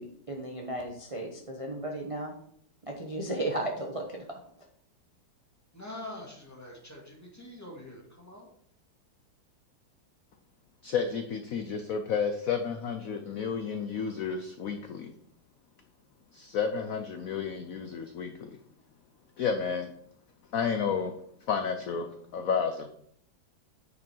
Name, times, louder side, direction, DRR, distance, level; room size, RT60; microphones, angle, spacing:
voice 1, 0.0-2.3 2.8-4.2, right 1 dB, 25° right, 0 dB, 0.8 m, -35 dB
voice 2, 5.7-8.5, left 1 dB, 10° left, -2 dB, 2.1 m, -44 dB
voice 3, 10.8-15.1 16.3-18.6 19.4-19.9 20.5-21.1 21.5-22.9, left 6 dB, 70° left, 7 dB, 0.8 m, -31 dB
9.6 x 5.4 x 4.5 m, 0.65 s
omnidirectional pair, 2.2 m